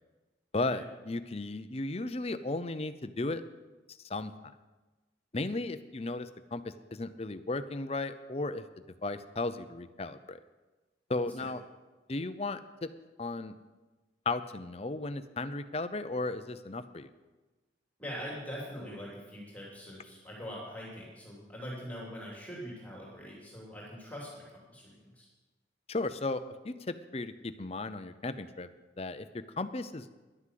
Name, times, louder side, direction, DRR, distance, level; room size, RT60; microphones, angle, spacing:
voice 1, 0.5-3.4 4.0-4.3 5.3-8.6 9.0-10.4 11.1-11.6 12.1-12.9 13.2-13.5 14.3-17.1 25.9-28.7 29.0-30.1, left 2 dB, 35° left, 11 dB, 0.6 m, -35 dB
voice 2, 18.0-25.3, equal, 10° left, -4 dB, 3.0 m, -43 dB
11.0 x 9.8 x 7.6 m, 1.2 s
head